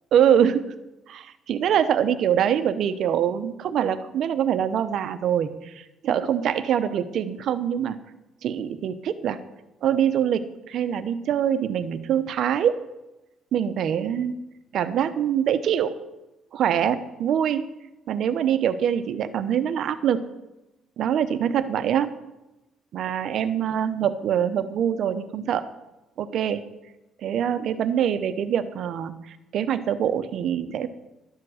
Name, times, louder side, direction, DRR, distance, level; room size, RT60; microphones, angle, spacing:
voice 1, 0.1-0.7 1.1-8.0 8.4-9.4 9.8-12.7 13.5-14.4 14.7-15.9 16.5-17.6 18.1-20.2 21.0-22.1 22.9-25.7 26.2-26.6 27.2-30.9, right 9 dB, 55° right, 12 dB, 0.7 m, -24 dB
12.0 x 7.4 x 6.3 m, 0.98 s
cardioid pair, 155°, 0 cm